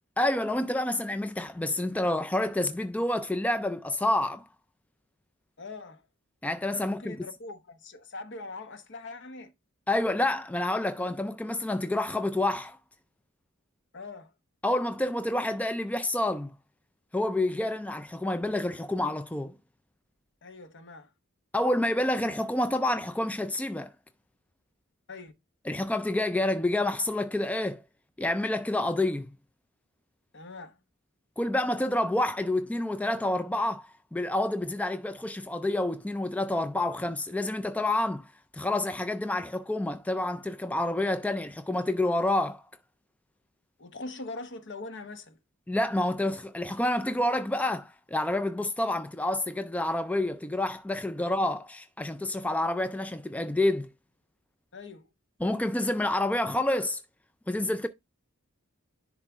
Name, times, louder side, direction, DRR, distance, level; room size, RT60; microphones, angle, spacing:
voice 1, 0.2-4.5 6.4-7.2 9.9-12.8 14.6-16.5 17.1-19.5 21.5-23.9 25.7-27.8 28.2-29.3 31.4-42.6 45.7-53.9 55.4-57.0 57.5-57.9, left 1 dB, 5° left, 0.3 m, -28 dB
voice 2, 5.6-6.1 6.8-9.5 13.9-14.3 20.4-21.1 25.1-25.3 30.3-30.8 43.8-45.4 54.7-55.1, left 3 dB, 55° left, 1.0 m, -42 dB
10.5 x 3.5 x 3.5 m
head